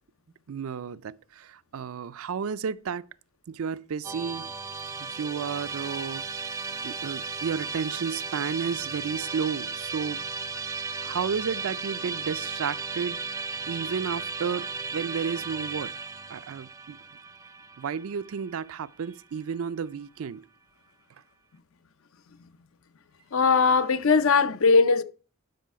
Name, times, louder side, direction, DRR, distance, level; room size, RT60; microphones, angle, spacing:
voice 1, 0.5-3.1 3.5-4.5 5.0-6.3 6.8-10.2 11.0-14.7 14.9-15.9 16.3-17.0 17.8-20.4, right 6 dB, 70° right, 0.4 m, -32 dB
Musical instrument, 4.0-19.2, right 4 dB, 15° right, 0.5 m, -35 dB
voice 2, 23.3-25.0, left 4 dB, 65° left, 0.6 m, -20 dB
11.5 x 5.6 x 4.6 m
head